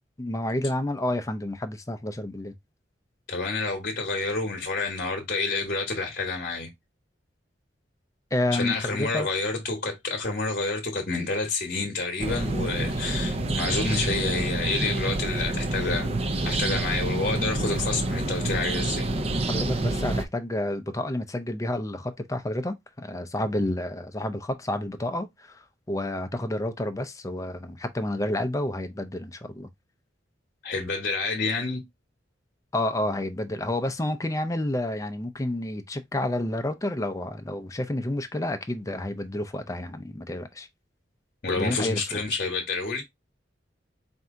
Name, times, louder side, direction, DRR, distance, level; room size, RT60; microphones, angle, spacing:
voice 1, 0.2-2.5 8.3-9.3 19.5-29.7 32.7-40.7 41.6-42.2, left 1 dB, 20° left, 0.5 m, -30 dB
voice 2, 3.3-6.7 8.5-16.1 16.4-19.1 30.6-31.8 41.4-43.0, left 3 dB, 50° left, 1.0 m, -29 dB
sound 1, 12.2-20.2, right 2 dB, 35° right, 0.6 m, -28 dB
4.4 x 2.7 x 3.5 m
head